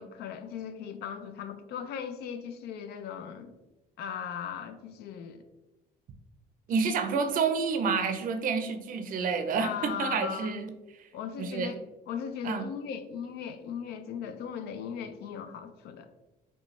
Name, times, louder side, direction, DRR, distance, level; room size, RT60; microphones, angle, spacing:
voice 1, 0.0-3.6 4.0-5.4 6.7-6.9 9.6-10.6 11.1-11.8 12.1-16.1, left 7 dB, 70° left, 9 dB, 0.4 m, -38 dB
voice 2, 6.7-11.1 11.4-11.8 12.4-12.7, right 5 dB, 55° right, 8 dB, 0.5 m, -29 dB
5.0 x 2.2 x 3.1 m, 1.0 s
cardioid pair, 110°, 17 cm